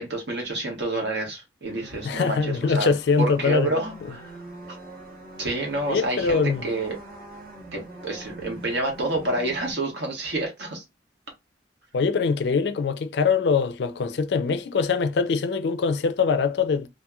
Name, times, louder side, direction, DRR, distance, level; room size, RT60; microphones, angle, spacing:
voice 1, 0.0-2.9 3.2-4.3 5.4-7.0 7.7-10.8, right 2 dB, 75° right, 1.3 m, -28 dB
sound 1, 1.6-9.7, right 1 dB, 55° right, 1.1 m, -43 dB
voice 2, 2.0-3.7 4.0-4.1 5.9-6.7 11.9-16.9, left 5 dB, 70° left, 0.4 m, -23 dB
2.9 x 2.5 x 2.3 m
head